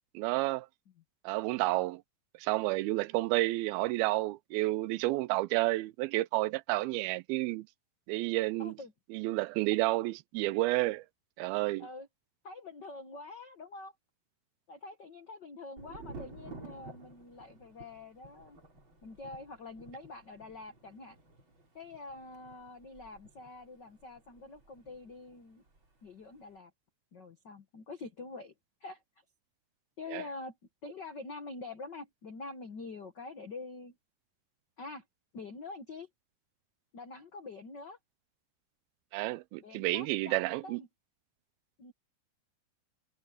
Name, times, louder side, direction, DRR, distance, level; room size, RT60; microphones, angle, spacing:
voice 1, 0.1-0.7 1.2-2.0 2.4-7.7 8.1-8.7 9.1-11.1 11.4-11.9 30.1-30.2 39.1-40.8, right 19 dB, 85° right, 2.4 m, -30 dB
voice 2, 8.6-8.9 11.8-12.1 12.4-13.9 14.7-18.6 19.0-21.2 21.7-25.6 26.0-26.7 27.1-28.5 28.8-29.0 30.0-30.6 30.8-33.9 34.8-35.0 35.3-36.1 36.9-38.0 39.6-40.9 41.8-41.9, left 3 dB, 75° left, 1.0 m, -46 dB
Thunder, 15.8-25.4 25.7-26.4, right 3 dB, 30° right, 5.6 m, -52 dB
omnidirectional pair, 4.3 m